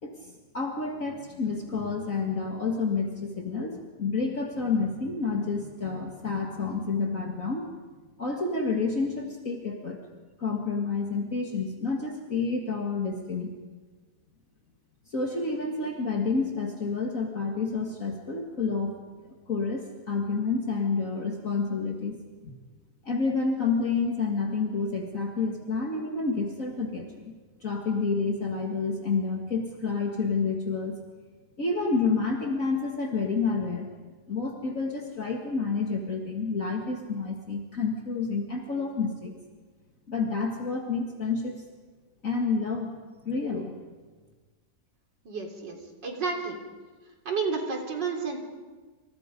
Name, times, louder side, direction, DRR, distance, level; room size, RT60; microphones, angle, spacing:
voice 1, 0.0-7.7 8.2-10.0 10.4-13.5 15.1-18.9 19.5-22.2 22.4-22.5 23.0-27.3 27.6-31.0 31.6-33.9 34.3-39.3 40.1-41.6 42.2-42.9 43.2-43.8, left 4 dB, 50° left, 1 dB, 2.4 m, -29 dB
voice 2, 45.2-46.6 47.3-48.4, right 4 dB, 85° right, 2 dB, 4.1 m, -31 dB
28.0 x 28.0 x 5.3 m, 1.4 s
omnidirectional pair, 1.9 m